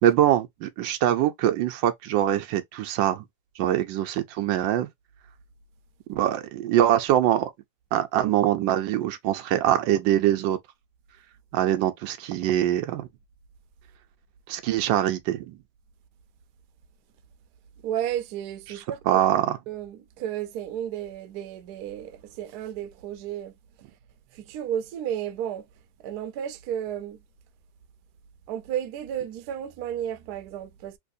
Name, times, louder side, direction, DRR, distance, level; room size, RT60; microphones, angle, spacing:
voice 1, 0.0-3.2 3.6-4.9 6.1-7.5 7.9-10.6 11.5-13.1 14.5-15.6 19.1-19.6, right 12 dB, 85° right, 1.3 m, -23 dB
voice 2, 17.8-19.2 19.7-23.6 23.9-24.0 24.3-25.7 26.0-27.2 28.5-31.0, right 10 dB, 70° right, 1.0 m, -33 dB
3.3 x 2.9 x 2.6 m
omnidirectional pair, 2.0 m